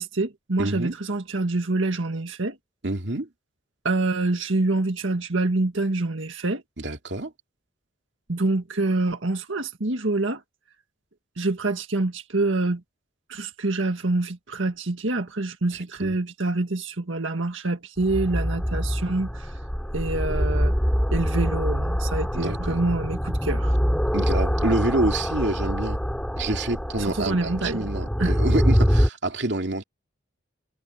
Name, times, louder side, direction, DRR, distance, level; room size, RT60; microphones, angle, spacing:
voice 1, 0.0-2.6 3.8-6.6 8.3-10.4 11.4-12.8 13.3-19.5 19.9-20.7 21.1-23.8 27.0-27.9 28.2-28.3, right 2 dB, 80° right, 1.7 m, -26 dB
voice 2, 0.6-1.0 2.8-3.3 6.8-7.3 16.0-16.2 22.3-22.8 24.1-26.0 26.4-29.8, right 2 dB, 60° right, 2.7 m, -27 dB
sound 1, 18.0-29.1, equal, 5° left, 4.3 m, -24 dB
head